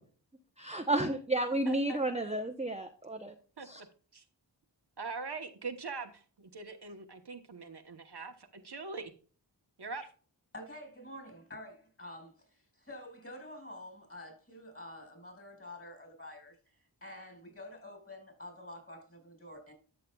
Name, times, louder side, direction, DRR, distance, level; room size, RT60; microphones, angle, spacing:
voice 1, 0.6-3.3 3.6-3.8, right 2 dB, 15° right, 0.8 m, -32 dB
voice 2, 1.6-2.3 3.6-3.7 4.1-4.2 5.0-9.1 9.8-10.0, right 4 dB, 60° right, 1.1 m, -42 dB
voice 3, 10.5-19.7, left 1 dB, 30° left, 4.9 m, -48 dB
13.0 x 6.6 x 2.3 m
wide cardioid pair, 50°, 45 cm